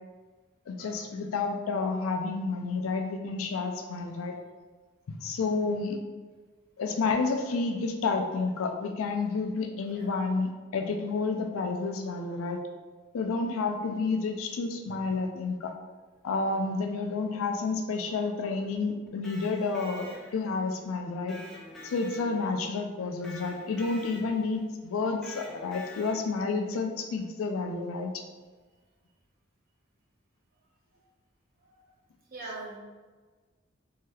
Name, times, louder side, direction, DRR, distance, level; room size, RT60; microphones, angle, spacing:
voice 1, 0.7-4.3 5.1-6.0 6.8-12.6 13.1-15.7 16.2-21.4 21.8-28.1, left 4 dB, 90° left, 4 dB, 0.4 m, -30 dB
Electric guitar, 19.1-20.6 21.3-22.7 23.2-24.5 25.2-26.5, left 1 dB, ahead, 0.3 m, -47 dB
voice 2, 32.3-32.8, right 3 dB, 45° right, -4 dB, 0.7 m, -42 dB
3.2 x 2.7 x 2.3 m, 1.4 s
head